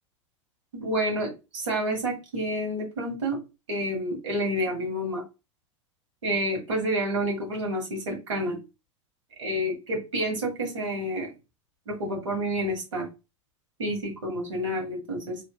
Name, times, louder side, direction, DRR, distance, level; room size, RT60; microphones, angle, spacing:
voice 1, 0.7-3.4 3.7-5.2 6.2-8.6 9.4-11.3 11.9-13.1 13.8-15.4, equal, 75° right, 0 dB, 1.8 m, -29 dB
3.2 x 3.0 x 2.3 m, 0.27 s
figure-of-eight pair, 85°, 16 cm